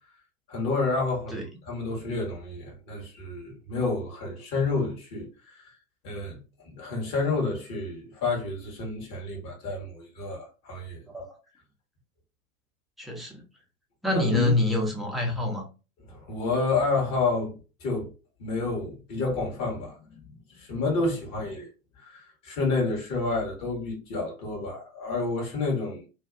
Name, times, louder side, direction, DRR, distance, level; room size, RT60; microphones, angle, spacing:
voice 1, 0.5-5.7 6.0-6.4 6.6-11.0 14.1-14.5 16.1-18.1 18.4-20.2 20.5-21.7 22.0-26.1, left 3 dB, 45° left, 1.2 m, -29 dB
voice 2, 13.0-13.4 14.0-15.6, left 1 dB, ahead, 0.4 m, -26 dB
2.6 x 2.3 x 2.3 m
figure-of-eight pair, 85°, 42 cm